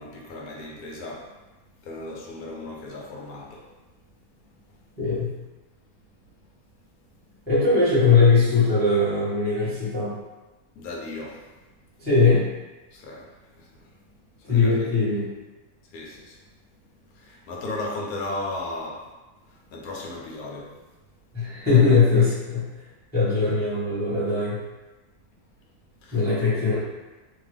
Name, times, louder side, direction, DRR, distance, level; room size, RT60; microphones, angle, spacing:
voice 1, 0.0-1.4 1.8-3.7 4.7-4.8 10.8-11.4 12.9-13.9 14.4-14.9 15.9-16.4 17.1-19.1 19.4-20.8 26.0-26.2, left 2 dB, 70° left, -1 dB, 1.1 m, -36 dB
voice 2, 5.0-5.3 7.5-10.2 12.0-12.5 14.4-15.3 21.3-22.8 23.1-24.6 26.1-26.7, left 4 dB, 10° left, -10 dB, 0.9 m, -20 dB
2.9 x 2.2 x 3.2 m, 1.1 s
omnidirectional pair, 1.7 m